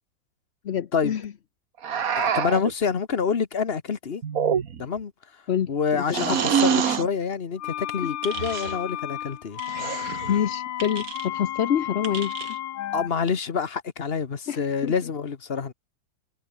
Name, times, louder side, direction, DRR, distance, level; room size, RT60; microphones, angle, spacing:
voice 1, 0.6-1.3 5.5-6.4 8.0-8.2 10.3-12.4 14.5-14.9, left 9 dB, 55° left, 0.7 m, -27 dB
sound 1, 1.8-2.7 4.2-5.0 6.1-7.1 8.3-8.8 9.7-10.4, right 7 dB, 50° right, 1.6 m, -25 dB
voice 2, 2.2-4.2 4.8-5.1 5.7-9.6 12.9-15.7, left 6 dB, 35° left, 1.2 m, -27 dB
sound 2, 7.6-13.1, left 12 dB, 85° left, 1.6 m, -33 dB
sound 3, 8.2-8.8 9.5-9.7 10.8-11.3 12.0-12.6, right 5 dB, 80° right, 3.2 m, -38 dB
omnidirectional pair, 2.0 m